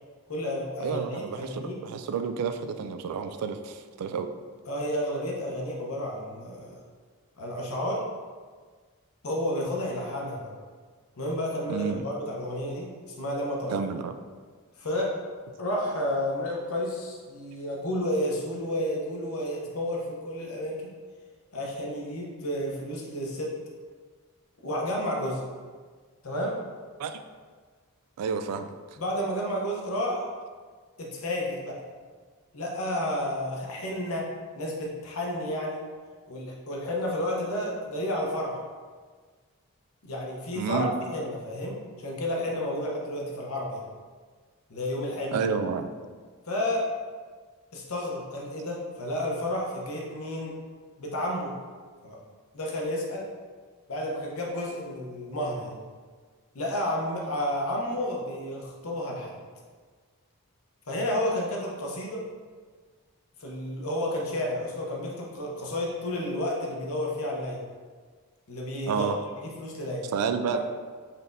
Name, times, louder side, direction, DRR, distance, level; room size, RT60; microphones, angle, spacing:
voice 1, 0.3-1.8 4.7-6.8 7.4-8.0 9.2-10.5 11.2-13.8 14.8-15.1 15.6-20.9 21.5-23.5 24.6-25.4 26.2-26.6 29.0-30.3 31.0-31.7 32.5-34.2 34.5-35.8 36.3-38.6 40.0-40.8 41.1-43.8 44.7-45.4 46.4-46.8 47.7-50.5 51.0-51.5 52.0-52.2 52.5-53.2 53.9-55.7 56.5-59.4 60.9-62.3 63.4-67.6 68.5-69.1 69.3-70.1 70.5-70.6, left 1 dB, 70° left, -2 dB, 0.8 m, -31 dB
voice 2, 0.8-4.3 11.7-12.0 13.7-14.1 27.0-27.2 28.2-28.7 40.5-40.9 45.3-45.9 68.9-69.2 70.1-70.6, right 6 dB, 85° right, 12 dB, 0.3 m, -30 dB
4.1 x 3.3 x 2.6 m, 1.5 s
head